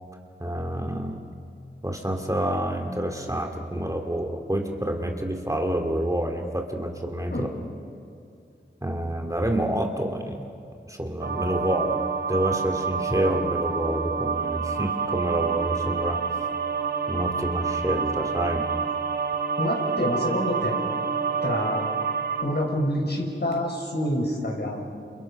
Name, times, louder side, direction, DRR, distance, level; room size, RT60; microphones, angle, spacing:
voice 1, 0.4-1.2 1.8-7.5 8.8-10.4 10.9-12.0 12.3-16.2 17.1-18.6, right 1 dB, 15° right, 2 dB, 2.5 m, -28 dB
sound 1, 11.2-22.4, right 6 dB, 60° right, 2.9 m, -28 dB
voice 2, 19.6-20.8 21.4-22.0 22.4-24.9, left 1 dB, 60° left, 0 dB, 6.5 m, -27 dB
29.5 x 29.0 x 5.9 m, 2.6 s
wide cardioid pair, 60°, 20 cm